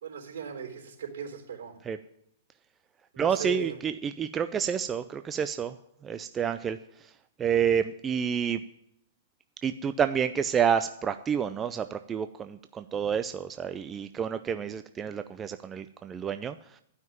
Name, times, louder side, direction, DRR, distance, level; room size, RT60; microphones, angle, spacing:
voice 1, 0.0-1.8 3.1-3.8, right 7 dB, 75° right, 1 dB, 3.7 m, -37 dB
voice 2, 3.2-5.8 6.0-7.1 7.4-8.6 9.6-16.8, right 7 dB, 15° right, 10 dB, 0.4 m, -29 dB
12.0 x 5.8 x 9.2 m, 0.74 s
hypercardioid pair, 150°, 0 cm